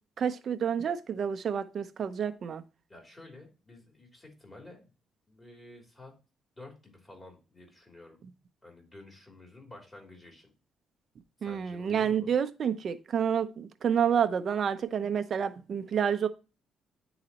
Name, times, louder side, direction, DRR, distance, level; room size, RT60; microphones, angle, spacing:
voice 1, 0.2-2.6 11.4-16.3, right 8 dB, 55° right, 0.7 m, -29 dB
voice 2, 2.9-4.9 5.3-6.1 6.6-8.2 8.6-10.5 11.4-12.3, left 2 dB, 20° left, 3.3 m, -51 dB
9.6 x 4.0 x 2.9 m
cardioid pair, 90°, 0 cm